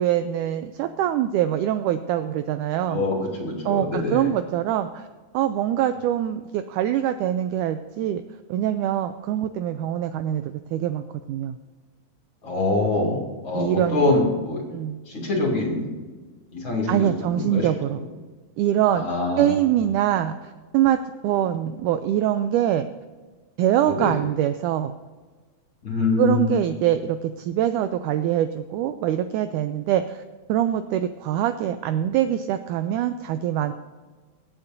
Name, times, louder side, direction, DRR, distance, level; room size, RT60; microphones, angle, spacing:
voice 1, 0.0-3.0 3.7-5.1 5.3-8.2 8.5-11.0 11.3-11.6 13.5-14.1 14.7-15.0 16.9-18.0 18.6-19.1 19.4-22.9 23.6-24.9 26.2-30.2 30.5-33.7, right 11 dB, 90° right, 10 dB, 1.8 m, -24 dB
voice 2, 2.8-4.3 12.4-13.2 13.4-14.6 15.1-15.9 16.5-17.7 18.0-18.1 18.9-19.6 23.8-24.2 25.8-26.6, left 2 dB, 40° left, -1 dB, 2.6 m, -24 dB
24.5 x 8.4 x 2.6 m, 1.4 s
omnidirectional pair, 4.1 m